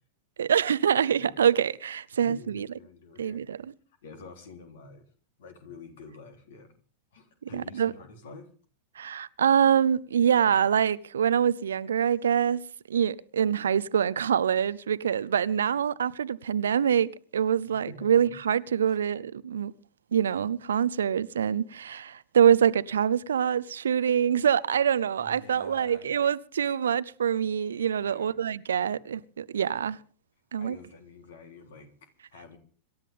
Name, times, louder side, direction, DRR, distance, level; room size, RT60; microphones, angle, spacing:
voice 1, 0.4-2.7 3.2-3.6 7.5-7.9 9.0-12.6 12.9-19.7 20.1-30.0 30.5-30.8, right 8 dB, 65° right, 0.6 m, -25 dB
voice 2, 2.1-3.4 4.0-5.0 5.4-6.7 7.1-8.5 17.7-18.1 18.9-19.0 25.2-26.1 28.0-28.4 28.9-29.0 30.6-32.6, left 4 dB, 60° left, 3.5 m, -48 dB
26.5 x 12.5 x 3.6 m
figure-of-eight pair, 90°, 0 cm